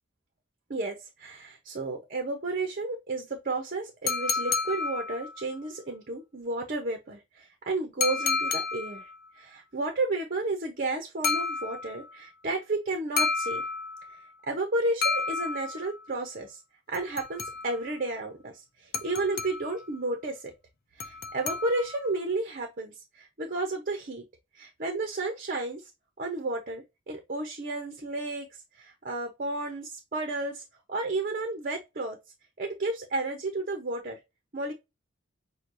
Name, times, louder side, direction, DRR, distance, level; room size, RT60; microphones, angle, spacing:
voice 1, 0.7-9.1 9.4-13.6 14.1-14.2 14.5-16.6 16.9-20.5 21.0-24.2 24.5-25.8 26.2-28.5 28.7-30.6 30.9-32.2 32.6-34.2 34.5-34.7, right 2 dB, 50° right, 0.9 m, -32 dB
sound 1, 4.1-5.5 8.0-9.2 11.2-12.1 13.2-14.2 15.0-16.0 16.9-17.9 18.9-19.9 21.0-22.1, left 4 dB, 55° left, 0.6 m, -31 dB
6.3 x 2.3 x 2.6 m
head